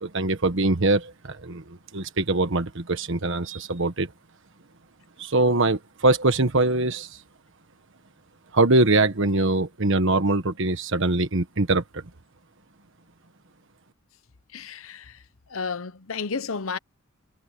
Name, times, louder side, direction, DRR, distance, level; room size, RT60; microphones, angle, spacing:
voice 1, 0.0-4.1 5.2-7.2 8.5-12.0, right 2 dB, 65° right, 1.4 m, -23 dB
voice 2, 14.5-15.2 15.5-16.8, left 5 dB, 80° left, 0.9 m, -32 dB
head